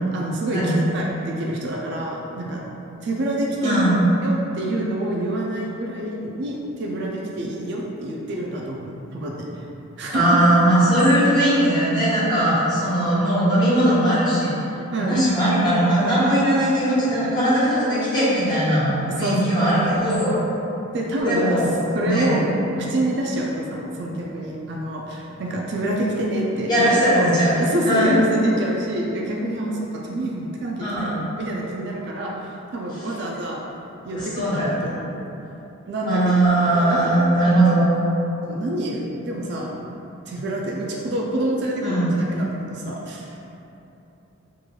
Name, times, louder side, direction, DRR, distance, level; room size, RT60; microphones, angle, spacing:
voice 1, 0.1-2.6 3.0-3.9 4.2-9.7 10.0-10.4 14.9-15.2 19.1-19.4 19.7-19.8 20.9-21.6 21.9-22.4 22.8-26.9 27.1-27.3 27.6-31.1 31.4-32.3 32.7-33.6 34.0-35.2 35.9-36.3 36.7-37.5 38.4-39.8 40.3-43.3, right 1 dB, 50° right, -2 dB, 0.3 m, -27 dB
voice 2, 3.6-4.0 10.1-14.5 15.1-20.4 21.2-21.7 22.0-22.4 22.7-22.9 26.7-27.5 27.8-28.1 30.8-31.3 34.1-34.9 36.1-37.9 41.8-42.1, right 1 dB, 20° left, -11 dB, 0.9 m, -19 dB
3.7 x 3.1 x 2.3 m, 3.0 s
head